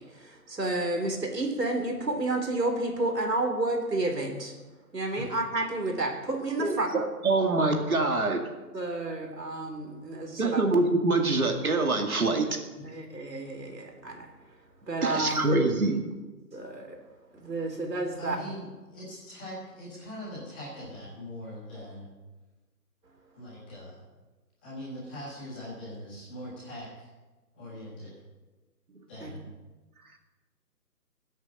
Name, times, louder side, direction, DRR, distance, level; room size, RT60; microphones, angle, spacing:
voice 1, 0.0-4.5 4.9-6.9 8.7-10.7 12.8-14.3 14.9-15.6 16.5-17.0 17.3-18.4 29.2-29.3, right 2 dB, 80° right, 4 dB, 3.8 m, -31 dB
voice 2, 6.6-8.4 10.4-12.6 15.0-16.0, right 3 dB, 60° right, 4 dB, 2.2 m, -25 dB
voice 3, 18.0-22.1 23.3-24.0 24.6-27.1 27.5-28.1 29.1-29.5, equal, 5° left, -10 dB, 1.7 m, -42 dB
21.0 x 8.3 x 5.4 m, 1.2 s
hypercardioid pair, 175°, 48 cm